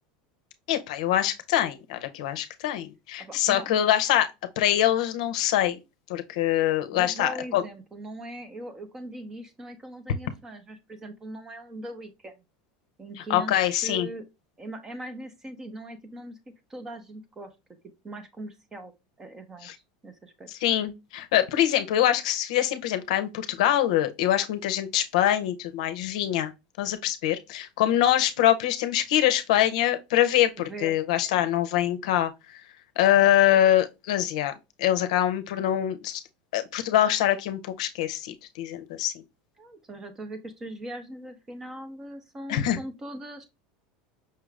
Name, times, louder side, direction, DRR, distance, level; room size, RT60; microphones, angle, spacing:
voice 1, 0.7-4.3 4.6-5.8 6.1-7.6 13.3-14.1 19.6-19.7 20.6-26.5 26.8-32.3 33.0-34.5 34.8-36.2 36.5-39.1 42.5-42.8, left 12 dB, 75° left, 0.6 m, -24 dB
voice 2, 3.2-3.8 6.9-12.4 13.0-14.3 14.6-16.4 16.7-17.5 18.0-18.9 19.2-19.7 20.0-20.5 30.6-30.9 31.3-31.5 39.6-43.5, right 1 dB, 15° right, 0.5 m, -40 dB
5.6 x 2.4 x 3.1 m
supercardioid pair, 175°, 4 cm